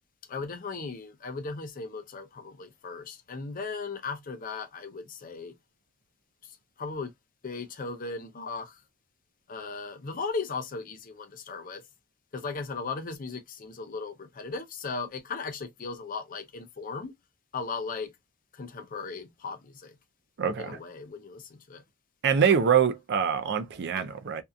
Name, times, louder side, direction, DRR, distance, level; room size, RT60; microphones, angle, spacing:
voice 1, 0.3-5.5 6.8-7.1 7.4-8.8 9.5-11.8 12.3-17.1 17.5-18.1 18.5-19.9 20.6-21.8, left 4 dB, 40° left, 0.5 m, -37 dB
voice 2, 20.4-20.8 22.2-24.4, right 7 dB, 50° right, 0.4 m, -24 dB
2.6 x 2.3 x 2.3 m
head